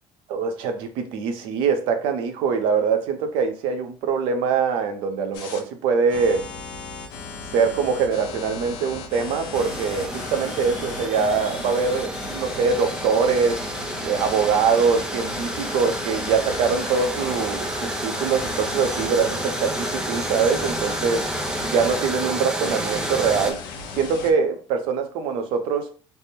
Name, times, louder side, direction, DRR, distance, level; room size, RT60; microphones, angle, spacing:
voice 1, 0.3-6.4 7.5-13.6 14.0-21.2 21.6-23.6 24.0-25.9, right 5 dB, 65° right, 7 dB, 0.6 m, -23 dB
sound 1, 5.3-5.6 6.1-22.1 22.6-24.3, left 4 dB, 60° left, 0.7 m, -36 dB
sound 2, 9.5-23.5, right 1 dB, 5° right, 0.3 m, -30 dB
3.3 x 2.1 x 4.3 m, 0.39 s
cardioid pair, 180°, 9 cm